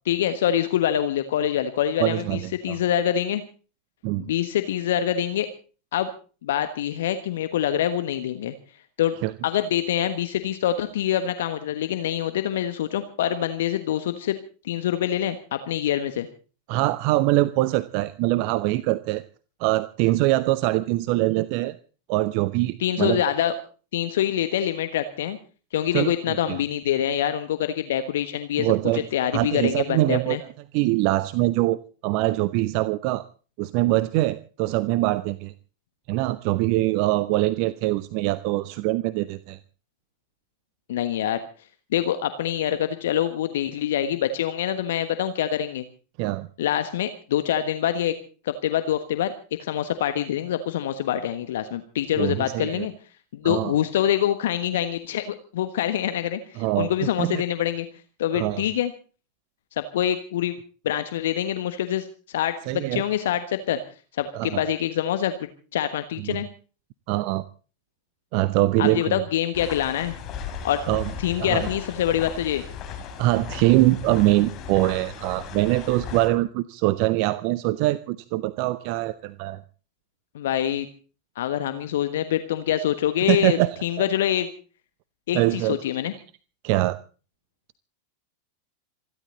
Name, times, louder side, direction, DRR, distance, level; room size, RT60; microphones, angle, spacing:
voice 1, 0.0-3.4 4.2-5.5 5.9-6.1 6.4-8.5 9.0-9.1 9.4-14.4 14.6-16.3 22.8-23.5 23.9-25.4 25.7-30.4 40.9-41.4 41.9-45.8 46.6-48.1 48.4-49.3 49.6-52.9 53.3-57.9 58.2-58.9 59.8-60.5 60.8-62.5 62.9-63.8 64.2-66.5 68.8-70.2 70.6-70.8 71.2-72.6 80.3-80.9 81.4-84.5 85.3-86.1, left 10 dB, 60° left, 10 dB, 1.3 m, -25 dB
voice 2, 2.0-2.8 4.0-4.2 9.2-9.3 16.7-19.2 19.6-21.8 22.1-23.2 25.9-26.6 28.6-29.1 29.3-30.4 30.7-33.2 33.6-35.5 36.1-39.6 46.2-46.5 52.2-52.9 53.4-53.7 56.6-56.9 57.2-57.4 58.3-58.6 62.7-63.0 64.3-64.6 66.2-66.4 67.1-67.4 68.3-69.2 70.9-71.1 71.4-71.7 73.2-79.6 83.3-83.7 84.0-84.1 85.3-85.8 86.6-87.0, right 17 dB, 45° right, 17 dB, 0.7 m, -23 dB
sound 1, 69.5-76.3, left 7 dB, 35° left, 3.9 m, -36 dB
27.0 x 11.5 x 4.0 m, 0.38 s
figure-of-eight pair, 90°, 0 cm